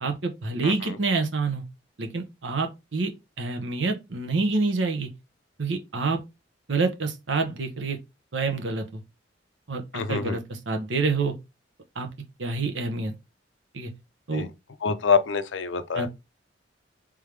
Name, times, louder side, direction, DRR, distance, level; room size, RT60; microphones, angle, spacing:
voice 1, 0.0-1.6 2.0-3.1 3.4-5.1 5.6-6.2 6.7-8.0 8.3-9.0 9.7-11.4 12.0-12.1 12.4-13.1 13.7-13.9 14.3-14.4 15.9-16.1, right 3 dB, 80° right, 0.9 m, -27 dB
voice 2, 9.9-10.4 14.4-14.5 14.8-16.1, left 5 dB, 85° left, 0.6 m, -25 dB
3.6 x 3.4 x 3.2 m
head